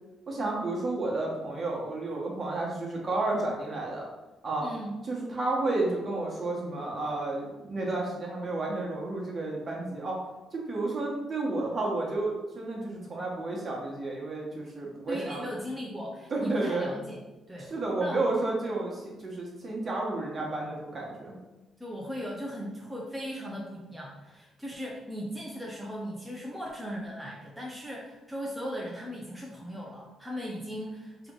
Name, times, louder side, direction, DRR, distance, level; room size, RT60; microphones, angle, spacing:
voice 1, 0.3-4.1 4.4-4.6 5.1-10.2 10.5-15.5 16.3-16.9 17.7-21.4, right 2 dB, 35° right, -3 dB, 1.3 m, -31 dB
voice 2, 4.6-4.9 15.1-17.2 17.5-17.7 18.0-18.3 21.8-31.3, equal, 5° right, -4 dB, 0.7 m, -38 dB
3.4 x 3.0 x 3.8 m, 1.1 s
cardioid pair, 90°, 0 cm